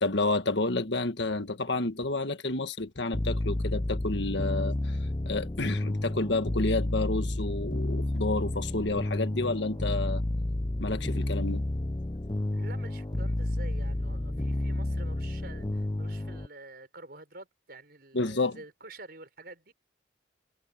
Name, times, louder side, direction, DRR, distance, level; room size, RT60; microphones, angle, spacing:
voice 1, 0.0-5.0 5.2-10.2 10.8-11.7 18.1-18.6, left 2 dB, 65° left, 1.6 m, -30 dB
sound 1, 3.1-16.5, left 1 dB, 20° left, 0.6 m, -31 dB
voice 2, 12.5-19.7, right 2 dB, 50° right, 5.2 m, -48 dB
head